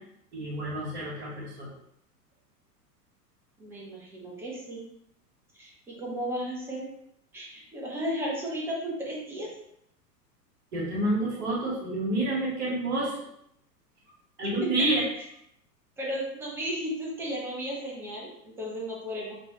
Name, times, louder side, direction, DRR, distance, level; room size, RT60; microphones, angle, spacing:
voice 1, 0.3-1.7 10.7-13.2 14.4-15.0, right 2 dB, 50° right, -7 dB, 1.6 m, -28 dB
voice 2, 3.6-4.9 5.6-6.9 7.3-9.5 16.0-19.3, equal, 5° right, -4 dB, 0.5 m, -34 dB
5.2 x 2.8 x 3.0 m, 0.74 s
figure-of-eight pair, 100°, 49 cm